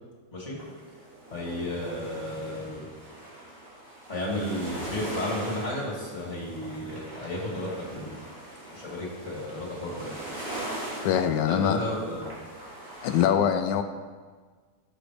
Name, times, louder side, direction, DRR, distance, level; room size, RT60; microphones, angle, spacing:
sound 1, 0.6-13.2, right 1 dB, 50° right, 3.6 m, -41 dB
voice 1, 1.3-2.9 4.1-8.2 8.7-10.1 11.5-12.3, left 1 dB, 40° left, -4 dB, 2.8 m, -33 dB
voice 2, 11.0-11.8 13.0-13.8, left 9 dB, 85° left, 7 dB, 1.2 m, -23 dB
12.0 x 8.0 x 3.3 m, 1.5 s
omnidirectional pair, 1.9 m